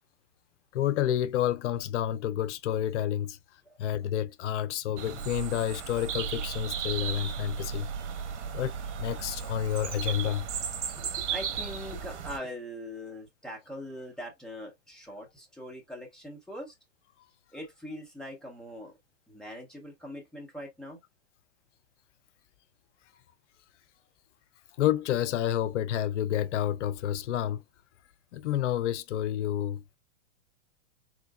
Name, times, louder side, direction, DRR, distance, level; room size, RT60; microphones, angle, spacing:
voice 1, 0.7-3.4 3.8-7.9 8.5-10.5 24.8-27.6 28.3-30.0, left 11 dB, 70° left, 0.5 m, -29 dB
sound 1, 5.0-12.4, right 7 dB, 65° right, 1.0 m, -35 dB
voice 2, 11.0-16.7 17.5-18.9 19.3-21.0, equal, ahead, 0.5 m, -42 dB
3.8 x 3.0 x 2.2 m
hypercardioid pair, 140°, 37 cm